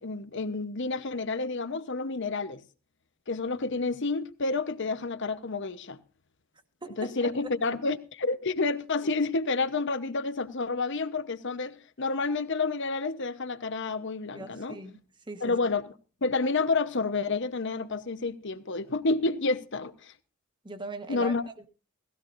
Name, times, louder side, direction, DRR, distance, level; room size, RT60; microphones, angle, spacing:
voice 1, 0.0-2.6 3.3-6.0 7.0-14.7 15.4-15.8 16.2-20.1 21.1-21.4, left 3 dB, 60° left, 1.0 m, -29 dB
voice 2, 6.8-7.7 14.3-15.0 15.2-15.6 20.6-21.7, right 2 dB, 20° right, 1.4 m, -41 dB
18.0 x 16.0 x 2.6 m
head